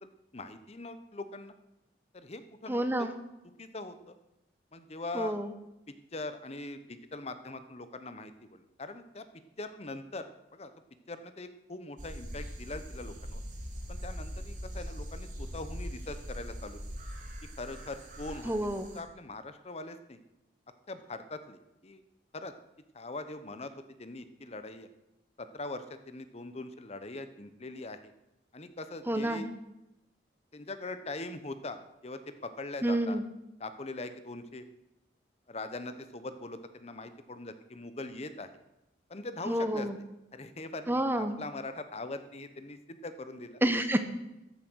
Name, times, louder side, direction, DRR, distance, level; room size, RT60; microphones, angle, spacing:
voice 1, 0.0-1.5 2.1-3.1 3.6-4.1 4.7-5.4 6.1-9.2 9.6-10.7 11.1-13.4 13.9-16.8 17.6-18.5 18.9-20.2 20.9-22.0 22.3-22.5 22.9-23.7 24.0-24.9 25.4-28.1 28.5-29.5 30.5-31.8 32.0-33.2 33.6-34.6 35.5-38.5 39.1-39.9 40.3-43.6, left 2 dB, 35° left, 10 dB, 0.9 m, -42 dB
voice 2, 2.7-3.1 5.1-5.5 18.4-18.9 29.1-29.5 32.8-33.2 39.5-40.0 40.9-41.3 43.6-44.0, right 1 dB, 10° right, 9 dB, 0.9 m, -29 dB
sound 1, 12.0-19.0, equal, 45° right, 2.9 m, -41 dB
14.0 x 10.5 x 6.3 m, 0.91 s
head